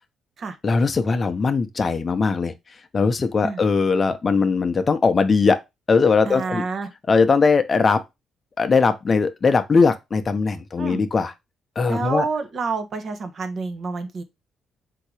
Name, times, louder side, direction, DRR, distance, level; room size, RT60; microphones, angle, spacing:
voice 1, 0.6-2.5 2.9-5.6 5.9-6.6 7.1-8.0 8.6-11.3 11.8-12.2, left 4 dB, 35° left, 0.6 m, -20 dB
voice 2, 6.2-6.9 10.8-11.0 11.9-14.2, right 4 dB, 50° right, 0.9 m, -28 dB
3.9 x 2.8 x 4.6 m
cardioid pair, 90°, 0 cm